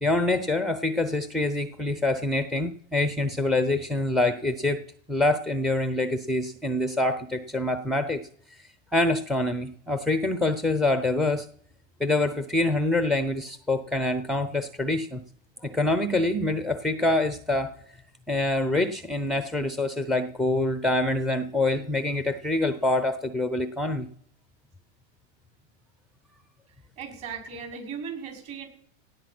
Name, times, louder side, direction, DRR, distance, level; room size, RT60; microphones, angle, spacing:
voice 1, 0.0-4.8 5.1-8.2 8.6-11.5 12.0-15.2 15.6-17.7 18.3-24.1, left 2 dB, ahead, 11 dB, 0.5 m, -25 dB
voice 2, 27.0-28.7, right 6 dB, 40° right, 3 dB, 5.8 m, -37 dB
17.5 x 8.6 x 6.0 m, 0.66 s
supercardioid pair, 140°, 39 cm